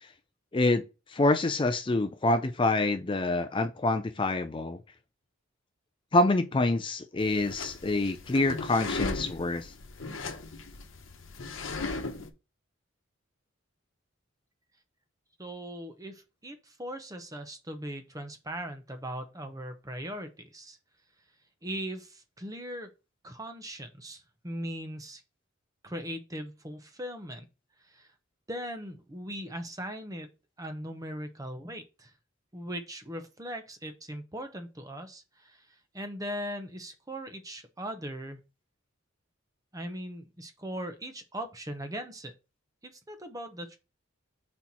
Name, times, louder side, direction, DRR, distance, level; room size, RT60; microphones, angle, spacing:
voice 1, 0.5-0.8 1.1-4.8 6.1-9.7, left 2 dB, 25° left, 0.5 m, -26 dB
sound 1, 7.2-12.3, left 3 dB, 75° left, 1.0 m, -37 dB
voice 2, 15.4-20.8 21.6-22.9 23.2-25.2 25.8-27.4 27.9-28.1 28.5-30.3 30.6-32.1 32.5-38.4 39.7-42.3 42.8-43.8, equal, 20° right, 0.8 m, -39 dB
4.5 x 4.3 x 5.4 m
head